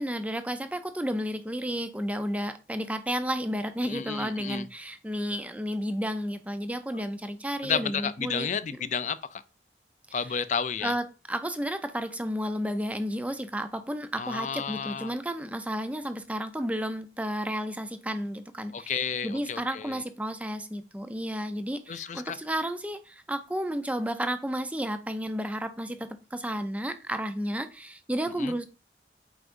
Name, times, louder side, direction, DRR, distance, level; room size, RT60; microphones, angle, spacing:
voice 1, 0.0-8.5 8.8-8.9 10.2-10.4 10.8-28.6, equal, 10° right, 0.5 m, -32 dB
voice 2, 3.8-4.7 7.6-9.4 10.1-10.9 14.2-15.1 18.7-20.0 21.9-22.4 28.4-28.5, left 6 dB, 45° left, 0.4 m, -32 dB
7.8 x 4.9 x 2.6 m
head